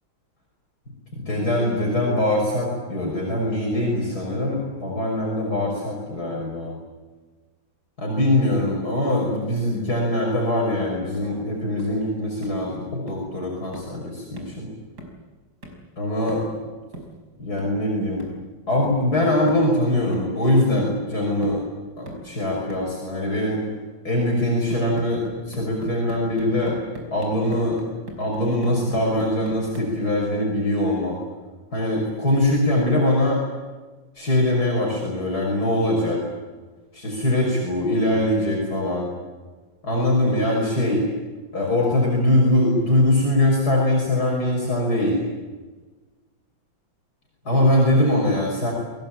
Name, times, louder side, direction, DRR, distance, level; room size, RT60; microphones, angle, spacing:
voice 1, 1.2-6.7 8.0-14.7 16.0-16.5 17.4-18.2 18.7-21.6 22.0-23.7 24.0-26.8 27.1-27.8 28.2-31.2 31.7-33.4 34.2-36.2 36.9-39.1 39.8-41.0 41.5-45.2 47.4-48.7, left 1 dB, 55° left, -2 dB, 6.6 m, -22 dB
sound 1, 11.1-11.4 11.8-12.0 12.4-12.7 13.1-13.3 13.7-14.0 14.4-14.6 15.0-15.3 15.6-15.9 16.3-16.6 16.9-17.2 17.6-17.8 18.2-18.5 18.8-19.1 19.5-19.7 20.1-20.5 20.8-21.0 21.4-21.7 22.1-22.3 22.7-22.9 24.7-30.0, right 1 dB, 55° right, 5.9 m, -40 dB
29.5 x 21.0 x 8.9 m, 1.3 s
omnidirectional pair, 2.1 m